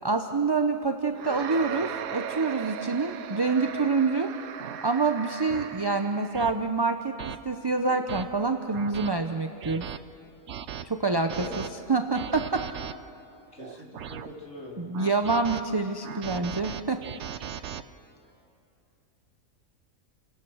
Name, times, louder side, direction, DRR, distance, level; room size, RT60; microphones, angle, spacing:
voice 1, 0.0-4.3 4.8-9.9 10.8-12.6 14.8-17.0, right 4 dB, 30° right, 6 dB, 0.5 m, -27 dB
sound 1, 1.1-6.5, right 8 dB, 85° right, 1.2 m, -37 dB
sound 2, 3.8-3.9 4.6-4.8 5.5-5.6 6.3-6.5 7.2-7.4 7.9-8.2 8.7-9.1 9.6-10.0 10.5-10.8 11.3-11.7 12.1-12.9 13.6-14.3 14.9-15.6 16.0-17.8, right 9 dB, 60° right, 0.9 m, -38 dB
voice 2, 13.5-14.9, left 1 dB, 60° left, -2 dB, 3.6 m, -42 dB
29.5 x 17.0 x 6.3 m, 2.7 s
omnidirectional pair, 1.5 m